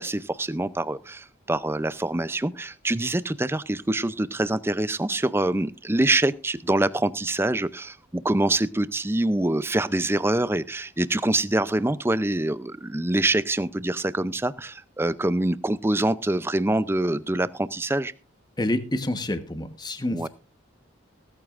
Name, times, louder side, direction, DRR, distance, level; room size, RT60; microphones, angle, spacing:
voice 1, 0.0-18.1 20.1-20.3, right 1 dB, 10° right, 15 dB, 0.5 m, -25 dB
voice 2, 18.6-20.3, left 1 dB, 20° left, 9 dB, 1.2 m, -28 dB
17.5 x 14.0 x 2.5 m, 0.31 s
head